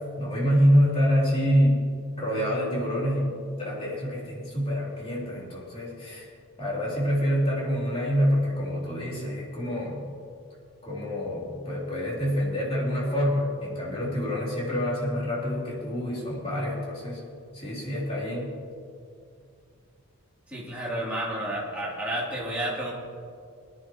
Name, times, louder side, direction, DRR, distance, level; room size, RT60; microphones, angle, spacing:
voice 1, 0.2-6.2 6.6-10.0 10.8-17.2 17.5-18.5, equal, 25° left, -6 dB, 3.2 m, -26 dB
voice 2, 20.5-22.9, right 1 dB, 5° right, -8 dB, 3.2 m, -31 dB
19.5 x 11.0 x 3.1 m, 2.3 s
head